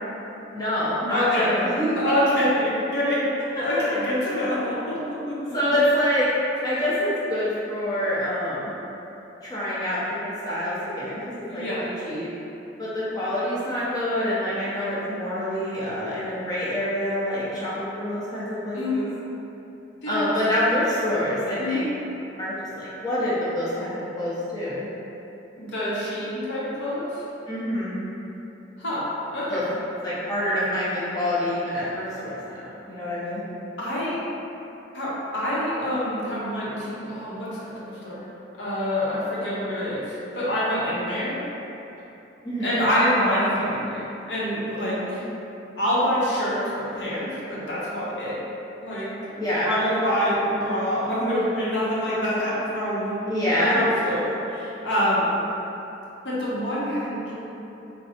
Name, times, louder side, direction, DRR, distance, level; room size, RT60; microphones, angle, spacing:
voice 1, 0.5-2.0 3.5-3.6 3.9-4.0 5.5-6.3 6.6-8.7 9.4-12.3 12.8-19.1 20.0-21.9 22.4-24.9 27.5-28.0 29.5-29.6 30.0-32.3 32.6-33.4 42.4-42.7 45.1-45.2 49.4-49.7 53.3-53.8, left 1 dB, 20° left, -11 dB, 0.8 m, -26 dB
voice 2, 1.1-1.5 2.0-3.2 3.6-5.6 11.5-11.8 18.7-19.1 20.0-20.2 21.6-21.8 25.6-27.2 28.8-29.0 29.3-29.7 33.8-34.2 34.9-38.2 38.6-41.4 42.6-45.2 45.8-48.4 48.8-49.1 49.6-53.2 53.6-55.4 56.2-57.3, equal, 65° left, -8 dB, 1.0 m, -26 dB
4.0 x 2.2 x 4.3 m, 3.0 s
head